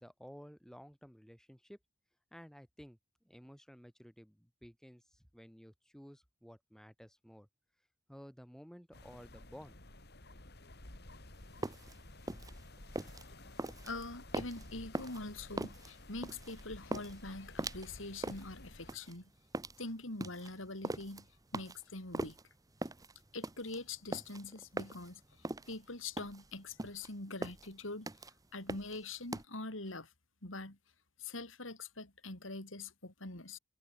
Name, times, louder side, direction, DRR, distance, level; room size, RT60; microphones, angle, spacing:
voice 1, 0.0-1.8 2.3-3.0 3.2-7.5 8.1-9.8, equal, 5° left, 6.5 m, -54 dB
sound 1, 8.9-18.9, left 1 dB, 55° left, 4.6 m, -53 dB
sound 2, 11.4-29.4, right 2 dB, 20° right, 1.0 m, -42 dB
voice 2, 13.8-19.3 19.8-21.3 21.5-22.4 23.3-28.1 28.5-30.1 30.4-30.8 31.2-33.6, left 2 dB, 85° left, 5.3 m, -44 dB
head